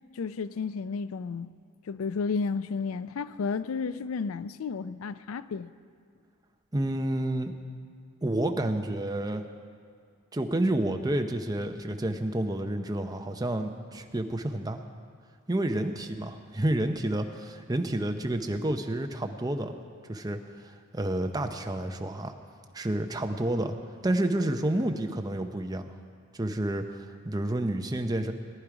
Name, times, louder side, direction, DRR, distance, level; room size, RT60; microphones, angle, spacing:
voice 1, 0.1-1.5 1.9-5.7, left 5 dB, 80° left, 15 dB, 0.4 m, -32 dB
voice 2, 6.7-7.5 8.2-9.5 10.3-14.8 15.5-19.8 20.1-22.3 22.7-23.7 24.0-26.0 26.3-28.3, right 1 dB, 20° right, 5 dB, 0.7 m, -29 dB
18.0 x 10.5 x 4.9 m, 2.2 s
head